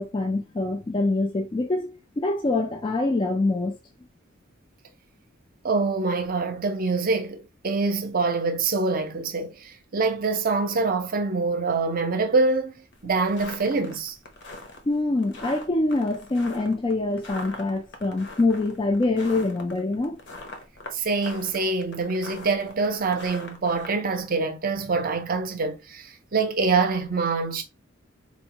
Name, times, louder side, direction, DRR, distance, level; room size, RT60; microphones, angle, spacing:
voice 1, 0.0-3.8 14.9-20.2, left 2 dB, 25° left, 0.4 m, -25 dB
voice 2, 5.6-14.1 20.9-27.6, right 4 dB, 45° right, 0.6 m, -25 dB
sound 1, 12.9-23.9, left 2 dB, 60° left, 0.8 m, -41 dB
4.3 x 2.1 x 2.8 m
head